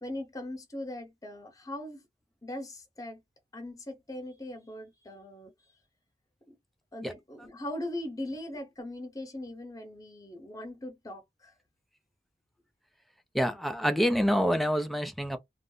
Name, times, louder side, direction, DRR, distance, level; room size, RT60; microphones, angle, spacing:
voice 1, 0.0-2.0 2.4-3.2 3.5-5.5 6.5-6.6 6.9-11.5, left 1 dB, 20° left, 0.9 m, -40 dB
voice 2, 13.3-15.4, equal, ahead, 0.4 m, -27 dB
2.4 x 2.0 x 3.8 m
head